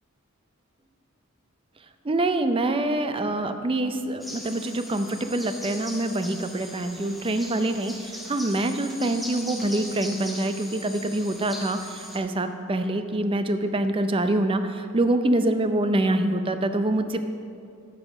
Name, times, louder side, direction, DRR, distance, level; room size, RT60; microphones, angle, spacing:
voice 1, 2.0-17.2, right 1 dB, 25° right, 8 dB, 0.5 m, -25 dB
sound 1, 4.2-12.2, equal, ahead, 0.9 m, -40 dB
9.8 x 5.7 x 6.3 m, 2.4 s
head